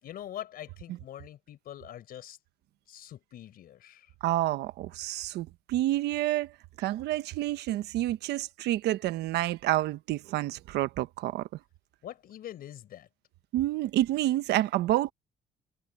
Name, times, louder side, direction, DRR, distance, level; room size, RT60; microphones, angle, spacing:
voice 1, 0.0-2.4 2.9-4.1 12.0-13.1, left 11 dB, 60° left, 4.8 m, -44 dB
voice 2, 4.2-6.5 6.8-11.5 13.5-15.1, right 15 dB, 80° right, 1.2 m, -29 dB
cardioid pair, 110°, 17 cm